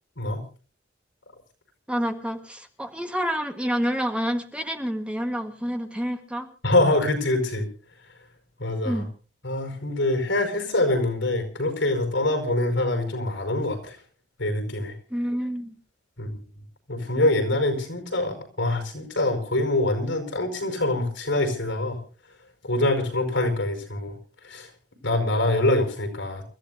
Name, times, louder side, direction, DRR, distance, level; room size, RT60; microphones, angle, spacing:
voice 1, 1.9-6.5 8.8-9.1 15.1-15.8, equal, 5° right, 5 dB, 1.5 m, -28 dB
voice 2, 6.6-7.7 8.6-9.0 9.4-14.0 14.4-14.9 16.2-16.4 16.9-22.0 22.6-24.2 24.4-24.7 25.0-26.4, left 2 dB, 80° left, 6 dB, 5.3 m, -24 dB
28.5 x 14.5 x 2.7 m, 0.36 s
head